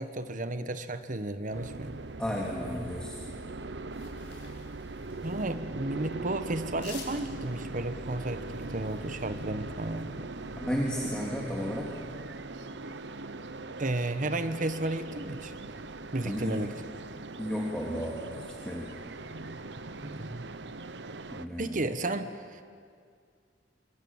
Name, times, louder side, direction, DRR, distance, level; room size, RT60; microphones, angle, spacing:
voice 1, 0.0-1.9 5.2-10.3 13.8-15.5 16.1-16.7 20.0-20.5 21.6-22.7, right 2 dB, 50° right, 10 dB, 1.3 m, -33 dB
sound 1, 1.5-21.5, right 2 dB, 80° right, 1.0 m, -41 dB
voice 2, 2.2-3.1 10.6-11.9 16.2-16.6 17.4-18.3 18.6-18.9 21.3-21.8, equal, 5° left, -3 dB, 2.7 m, -33 dB
sound 2, 3.9-5.6 6.7-9.3, left 5 dB, 85° left, 5.3 m, -50 dB
27.0 x 25.0 x 7.3 m, 2.2 s
head